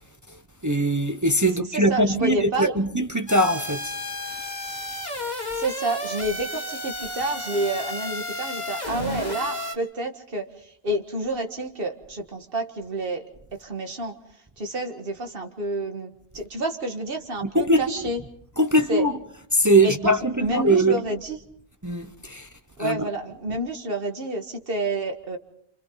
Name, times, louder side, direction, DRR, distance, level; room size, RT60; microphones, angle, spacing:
voice 1, 0.3-4.0 17.4-18.1 18.6-19.2 19.5-21.0 21.8-22.5 22.8-23.0, right 1 dB, 20° right, 0.9 m, -22 dB
voice 2, 1.7-2.7 5.5-13.3 13.6-14.2 14.6-18.2 18.9-19.1 19.8-21.4 22.8-25.4, right 2 dB, 60° right, 2.0 m, -29 dB
sound 1, 3.3-9.8, left 1 dB, 45° left, 2.2 m, -32 dB
30.0 x 27.5 x 4.0 m
omnidirectional pair, 1.0 m